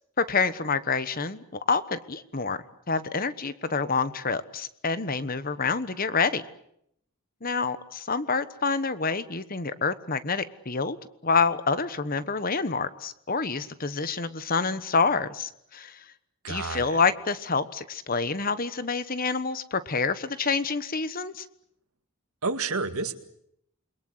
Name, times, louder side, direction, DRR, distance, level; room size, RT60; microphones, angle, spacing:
voice 1, 0.2-2.6 2.9-6.4 7.4-11.0 11.2-16.0 16.5-21.4, left 4 dB, 40° left, 13 dB, 1.2 m, -27 dB
voice 2, 16.4-17.0 22.4-23.1, right 4 dB, 85° right, 9 dB, 2.1 m, -30 dB
28.5 x 22.0 x 8.1 m, 0.74 s
head